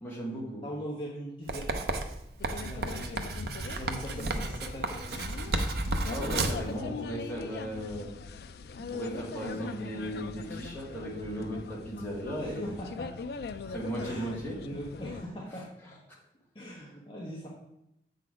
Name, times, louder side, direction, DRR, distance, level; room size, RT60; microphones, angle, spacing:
voice 1, 0.0-0.6 6.0-8.1 8.8-12.8 13.6-14.6, equal, 10° left, -6 dB, 1.8 m, -36 dB
voice 2, 0.6-1.8 2.5-3.2 3.6-5.3 12.4-13.1 14.0-15.8 16.5-17.5, equal, 30° left, -5 dB, 1.0 m, -41 dB
Writing, 1.5-6.7, right 2 dB, 60° right, 0.6 m, -32 dB
sound 1, 2.4-15.2, left 4 dB, 60° left, 0.3 m, -41 dB
7.5 x 4.0 x 4.8 m, 0.82 s
head